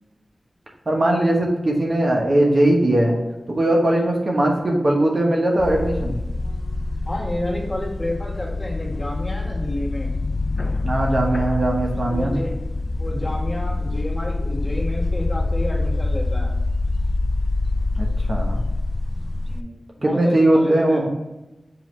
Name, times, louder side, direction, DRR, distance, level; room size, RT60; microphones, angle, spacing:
voice 1, 0.9-3.1 3.5-6.1 10.8-12.3 17.9-18.6 20.0-21.1, right 1 dB, 50° right, 0 dB, 1.1 m, -19 dB
sound 1, 5.6-19.6, left 2 dB, 45° left, 0.4 m, -25 dB
voice 2, 7.1-10.1 12.1-12.6 13.0-16.6 19.5-21.0, left 1 dB, 25° left, -4 dB, 1.7 m, -30 dB
6.9 x 3.1 x 4.4 m, 0.98 s
wide cardioid pair, 65°, 0 cm